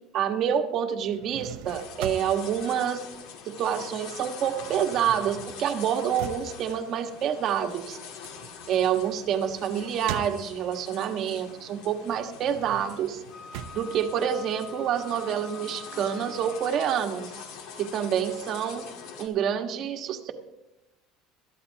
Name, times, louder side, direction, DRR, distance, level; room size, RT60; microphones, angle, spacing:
voice 1, 0.1-3.0 3.4-8.0 8.7-13.2 13.7-17.3 17.8-18.8 19.2-20.3, right 9 dB, 45° right, 5 dB, 1.5 m, -27 dB
sound 1, 1.0-3.8 4.1-10.9 11.4-14.9, right 10 dB, 75° right, 0.9 m, -42 dB
sound 2, 1.7-19.3, left 6 dB, 70° left, 2.3 m, -44 dB
Wind instrument woodwind instrument, 13.3-16.9, left 4 dB, 20° left, 0.8 m, -45 dB
21.5 x 14.0 x 2.9 m, 0.97 s
cardioid pair, 150°, 0 cm